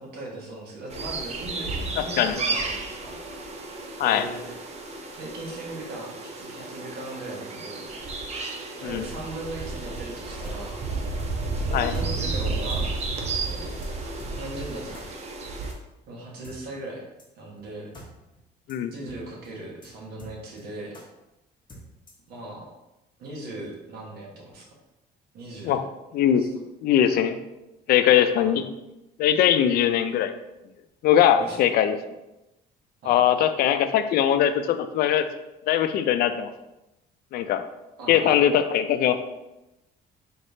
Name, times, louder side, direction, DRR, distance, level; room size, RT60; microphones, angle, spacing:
voice 1, 0.0-3.2 4.0-4.5 5.2-7.9 8.8-10.8 11.5-13.7 14.3-15.0 16.1-17.0 17.3-17.9 18.9-21.0 22.3-22.7 23.2-24.7 25.3-25.8 26.4-26.5 28.4-28.6 31.4-31.7 33.0-33.2 38.0-38.3, right 2 dB, 70° right, -2 dB, 1.3 m, -38 dB
sound 1, 0.9-15.7, right 3 dB, 40° right, 0.6 m, -32 dB
sound 2, 10.4-10.6 11.2-11.3 11.9-12.0 12.7-12.8 13.1-13.2 13.4-13.5 13.8-13.9 14.2-14.3 14.9-15.0 15.7-15.8 16.4-16.6 17.2-17.3 17.6-17.7 17.9-18.1 18.3-18.4 18.7-18.8 19.1-19.2 19.4-19.5 19.8-19.9 20.2-20.6 20.9-21.0 21.7-22.3, left 1 dB, 25° left, 1.1 m, -46 dB
voice 2, 26.8-27.4 27.9-28.6 29.2-30.3 31.0-32.0 33.1-35.2 35.7-36.5 37.3-37.6 38.1-39.2, left 10 dB, 65° left, 9 dB, 0.4 m, -21 dB
4.2 x 3.3 x 2.7 m, 0.95 s
cardioid pair, 110°, 17 cm